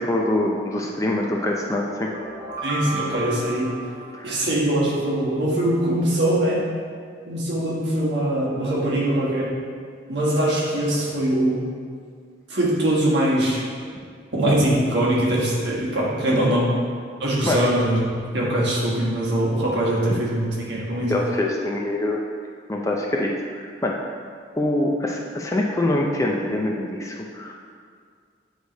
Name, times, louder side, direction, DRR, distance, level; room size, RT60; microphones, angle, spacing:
voice 1, 0.0-2.1 4.1-4.4 16.3-16.6 17.4-17.6 21.1-22.2 22.7-24.0 24.6-27.5, left 1 dB, 15° left, -1 dB, 0.4 m, -24 dB
sound 1, 1.9-5.0, right 2 dB, 15° right, 0.9 m, -34 dB
voice 2, 2.6-3.7 4.2-6.6 7.3-9.5 10.1-11.6 12.5-13.6 14.3-16.7 17.2-21.1, right 1 dB, 60° right, -5 dB, 1.4 m, -22 dB
8.4 x 3.2 x 4.0 m, 2.1 s
head